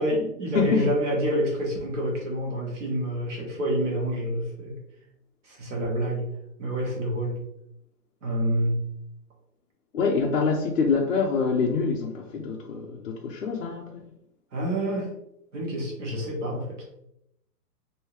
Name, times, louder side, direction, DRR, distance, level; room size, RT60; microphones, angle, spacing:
voice 1, 0.0-4.8 5.4-6.3 6.6-7.4 8.2-8.8 14.5-15.1 15.5-16.8, equal, 50° right, -2 dB, 1.3 m, -28 dB
voice 2, 0.5-0.9 9.9-14.1, left 5 dB, 55° left, -2 dB, 0.5 m, -25 dB
3.1 x 2.7 x 3.0 m, 0.80 s
hypercardioid pair, 175°, 48 cm